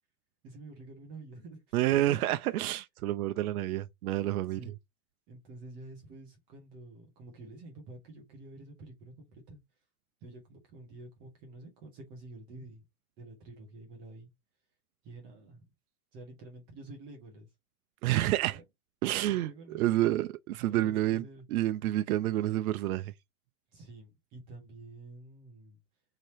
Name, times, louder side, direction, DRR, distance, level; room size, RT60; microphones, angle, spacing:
voice 1, 0.4-1.6 4.5-4.8 5.3-9.6 10.2-12.8 13.2-14.3 15.0-15.7 16.1-17.5 18.5-18.6 19.2-19.8 20.7-21.4 23.7-25.8, right 2 dB, 15° right, 0.4 m, -49 dB
voice 2, 1.7-4.6 18.0-18.6 19.0-21.2 21.5-23.1, right 15 dB, 85° right, 0.5 m, -29 dB
3.2 x 2.9 x 4.0 m
supercardioid pair, 165°, 43 cm